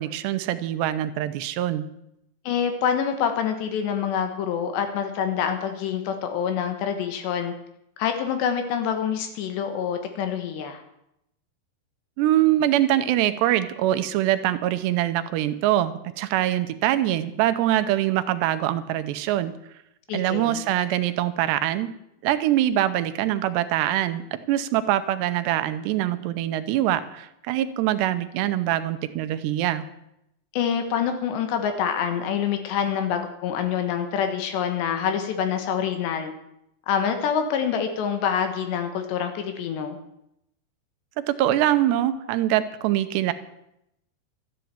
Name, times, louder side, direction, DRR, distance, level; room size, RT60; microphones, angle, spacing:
voice 1, 0.0-1.9 12.2-19.5 20.1-21.9 22.2-29.9 41.3-43.3, right 13 dB, 85° right, 11 dB, 2.9 m, -23 dB
voice 2, 2.5-7.5 8.0-10.8 20.1-20.6 30.5-36.3 36.9-40.0, left 8 dB, 80° left, 7 dB, 3.5 m, -26 dB
13.5 x 9.4 x 8.7 m, 0.81 s
omnidirectional pair, 5.0 m